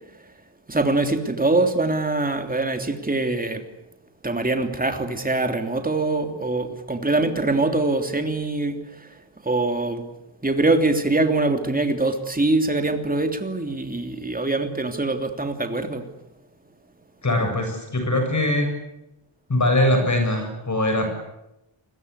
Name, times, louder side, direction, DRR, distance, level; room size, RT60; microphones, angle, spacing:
voice 1, 0.7-3.6 4.2-9.2 9.4-10.0 10.4-16.1, right 2 dB, 20° right, 5 dB, 3.1 m, -23 dB
voice 2, 17.2-18.7 19.5-21.1, left 1 dB, 40° left, 4 dB, 7.4 m, -21 dB
29.0 x 22.0 x 8.3 m, 0.88 s
wide cardioid pair, 140°, 46 cm